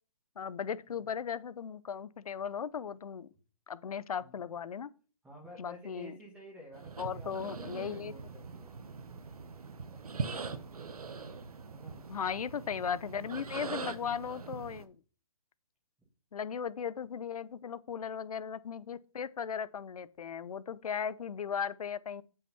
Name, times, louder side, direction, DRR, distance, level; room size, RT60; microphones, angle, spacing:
voice 1, 0.4-3.3 3.7-4.9 5.6-6.1 7.0-8.1 12.1-15.0 16.3-22.2, left 7 dB, 80° left, 0.7 m, -37 dB
voice 2, 5.2-8.8 11.7-12.0, equal, 5° right, 1.8 m, -52 dB
sound 1, 6.7-14.8, right 4 dB, 85° right, 1.1 m, -42 dB
8.3 x 5.7 x 5.5 m
hypercardioid pair, 145°, 18 cm